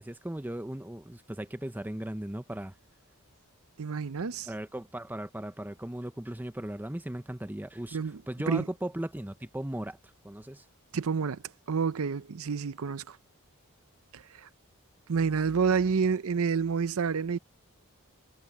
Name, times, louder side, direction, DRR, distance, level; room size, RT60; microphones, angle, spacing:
voice 1, 0.0-2.7 4.5-8.0 8.3-10.0 10.2-10.6, right 1 dB, 10° right, 0.6 m, -37 dB
voice 2, 3.8-4.5 7.9-8.2 8.5-8.7 10.9-11.4 11.7-13.2 14.1-14.5 15.1-17.4, right 5 dB, 65° right, 0.6 m, -28 dB
head